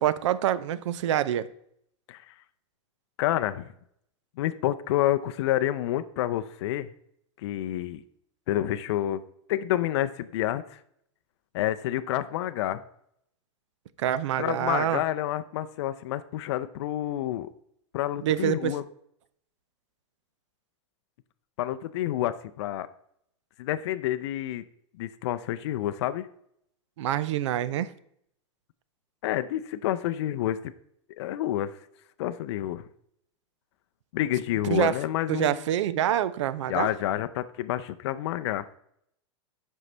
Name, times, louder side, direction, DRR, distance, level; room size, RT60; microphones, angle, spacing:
voice 1, 0.0-1.5 14.0-15.0 18.2-18.7 27.0-27.9 34.6-35.0 35.3-36.9, right 11 dB, 80° right, 0.5 m, -26 dB
voice 2, 3.2-3.7 4.4-6.9 7.4-8.0 8.5-9.2 9.5-10.8 11.5-12.8 14.4-17.5 17.9-18.8 21.6-22.9 23.6-24.6 25.0-26.3 29.2-30.7 31.2-31.8 32.2-32.8 34.1-35.6 36.7-38.6, left 13 dB, 65° left, 0.4 m, -28 dB
7.7 x 5.4 x 3.3 m
supercardioid pair, 155°, 15 cm